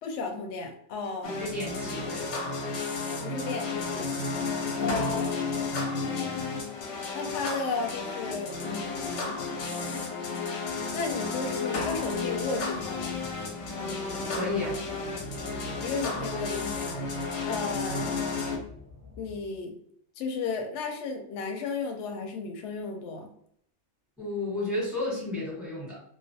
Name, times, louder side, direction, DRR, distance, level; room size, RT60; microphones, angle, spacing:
voice 1, 0.0-1.3 3.2-4.1 4.8-5.3 7.1-9.4 10.9-13.2 15.8-17.1 17.4-18.1 19.2-19.7 20.2-23.3, left 4 dB, 65° left, 3 dB, 0.8 m, -34 dB
sound 1, 1.2-18.6, left 4 dB, 90° left, 1.1 m, -32 dB
voice 2, 1.3-2.2 4.7-5.0 14.3-14.8 17.6-17.7 24.2-26.0, left 2 dB, ahead, -6 dB, 0.9 m, -32 dB
sound 2, 11.9-19.4, left 4 dB, 30° left, 0.3 m, -48 dB
2.4 x 2.1 x 2.6 m, 0.67 s
omnidirectional pair, 1.4 m